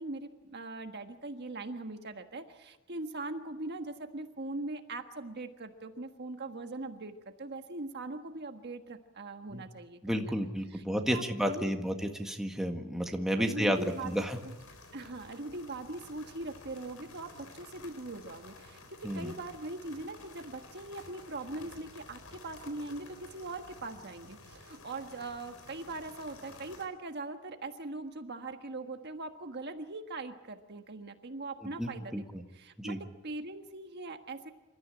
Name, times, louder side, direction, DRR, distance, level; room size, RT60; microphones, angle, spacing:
voice 1, 0.0-11.8 13.4-14.5 14.9-32.2 32.5-34.5, right 2 dB, 50° right, 6 dB, 1.5 m, -41 dB
voice 2, 10.0-14.4 19.0-19.3 31.8-32.4 32.8-33.0, equal, ahead, 3 dB, 1.7 m, -32 dB
sound 1, 13.7-26.9, left 3 dB, 80° left, 4.1 m, -52 dB
27.5 x 13.5 x 9.8 m, 1.1 s
head